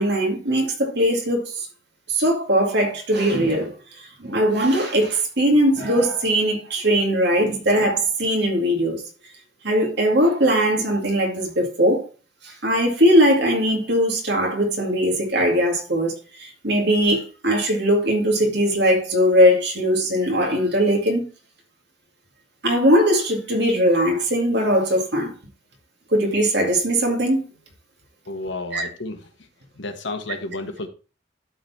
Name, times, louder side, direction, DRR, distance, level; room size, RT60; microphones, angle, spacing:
voice 1, 0.0-1.7 2.1-3.7 4.0-9.0 9.6-12.1 12.4-21.3 22.6-25.3 26.1-27.4 28.7-28.9, equal, 60° right, 2.2 m, -20 dB
voice 2, 28.3-29.3 29.7-30.9, left 2 dB, 70° left, 1.4 m, -31 dB
12.0 x 4.1 x 4.2 m
head